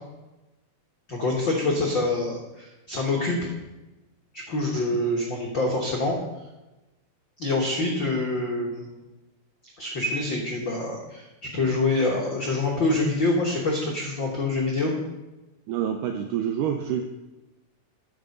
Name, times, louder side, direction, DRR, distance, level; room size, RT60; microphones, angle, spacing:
voice 1, 1.1-3.5 4.3-6.2 7.4-9.0 9.8-11.2 11.5-14.9, left 2 dB, 85° left, -2 dB, 1.0 m, -26 dB
voice 2, 15.7-17.0, right 9 dB, 90° right, 5 dB, 1.8 m, -27 dB
10.0 x 6.9 x 5.3 m, 1.1 s
omnidirectional pair, 4.4 m